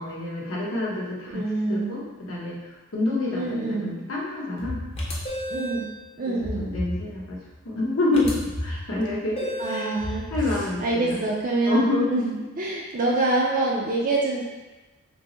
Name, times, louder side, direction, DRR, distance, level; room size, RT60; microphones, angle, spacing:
voice 1, 0.0-4.8 6.3-11.2 11.7-12.1, left 2 dB, 70° left, -5 dB, 0.9 m, -28 dB
voice 2, 1.3-2.0 3.3-4.0 5.5-5.9 6.2-6.7 9.6-10.2 10.8-14.4, right 2 dB, 40° right, -3 dB, 0.4 m, -26 dB
sound 1, 4.6-5.8 6.4-7.6 8.2-9.3 10.0-11.1, left 1 dB, 75° right, 1.4 m, -34 dB
sound 2, 5.0-5.9 8.1-8.3 9.4-10.0, right 1 dB, 30° left, 0.6 m, -32 dB
5.2 x 2.0 x 3.0 m, 1.2 s
head